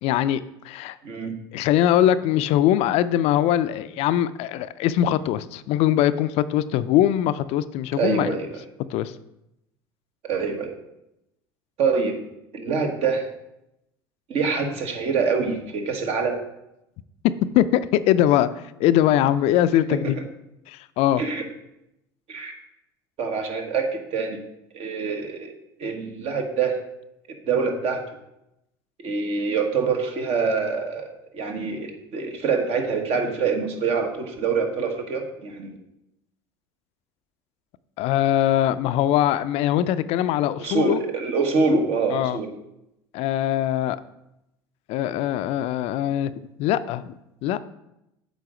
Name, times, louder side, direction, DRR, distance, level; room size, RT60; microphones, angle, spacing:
voice 1, 0.0-1.0 1.5-8.3 8.9-9.1 17.6-20.2 20.7-21.2 38.0-41.0 42.1-42.4 43.1-44.0 44.9-46.3 46.6-47.6, left 12 dB, 55° left, 13 dB, 0.4 m, -22 dB
voice 2, 1.0-1.4 8.0-8.6 10.3-10.7 11.8-12.2 12.5-13.3 14.3-16.4 20.0-20.1 21.2-21.4 22.3-22.5 23.2-24.4 24.7-25.5 25.8-26.8 27.5-28.0 29.0-35.8 40.6-42.5, right 4 dB, 55° right, 3 dB, 1.4 m, -25 dB
8.2 x 4.0 x 4.9 m, 0.86 s
hypercardioid pair, 75°, 12 cm